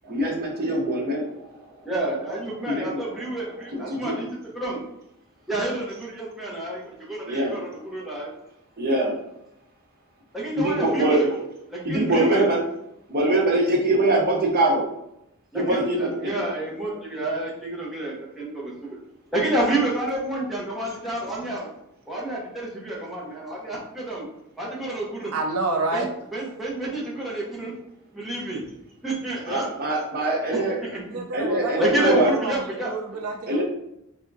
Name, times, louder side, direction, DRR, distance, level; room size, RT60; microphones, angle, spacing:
voice 1, 0.0-1.5 2.7-3.0 3.7-4.1 7.3-7.6 8.8-9.2 10.6-11.3 11.8-12.6 13.1-14.9 15.5-16.1 29.4-30.8 31.3-32.3 33.5-33.6, right 1 dB, 45° right, -1 dB, 0.9 m, -23 dB
voice 2, 1.8-4.9 5.5-8.3 10.3-11.3 11.7-12.5 15.5-19.0 19.3-21.7 22.1-24.3 24.6-25.3 25.9-26.1 26.3-27.7 28.1-28.6 29.0-29.7 30.8-31.2 31.8-32.9, right 2 dB, ahead, -6 dB, 0.9 m, -29 dB
voice 3, 25.3-26.1 31.1-33.6, right 3 dB, 70° right, 3 dB, 0.4 m, -29 dB
3.5 x 3.5 x 2.7 m, 0.82 s
head